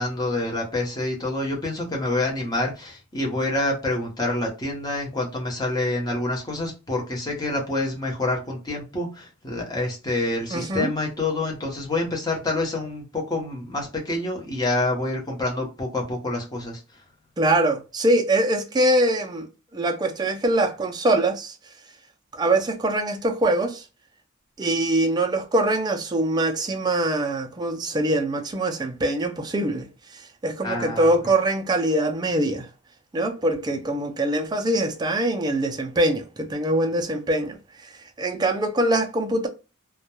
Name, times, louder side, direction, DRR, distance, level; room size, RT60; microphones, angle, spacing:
voice 1, 0.0-16.8 30.6-31.2, left 2 dB, 20° left, 0.7 m, -27 dB
voice 2, 10.5-10.9 17.4-19.5 19.7-21.6 22.3-23.8 24.6-32.7 33.1-37.6 37.8-37.9 38.2-39.5, right 1 dB, 20° right, 0.3 m, -23 dB
2.2 x 2.1 x 2.9 m
head